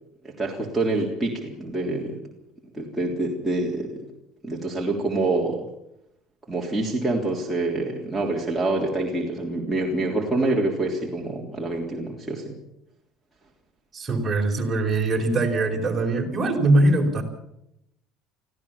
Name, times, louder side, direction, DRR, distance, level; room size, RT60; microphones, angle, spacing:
voice 1, 0.2-2.2 2.7-4.0 4.4-5.6 6.5-12.6, right 2 dB, 5° right, -3 dB, 3.5 m, -26 dB
voice 2, 13.9-17.2, right 2 dB, 20° right, 2 dB, 4.6 m, -22 dB
25.0 x 15.5 x 7.1 m, 0.82 s
cardioid pair, 135°, 0 cm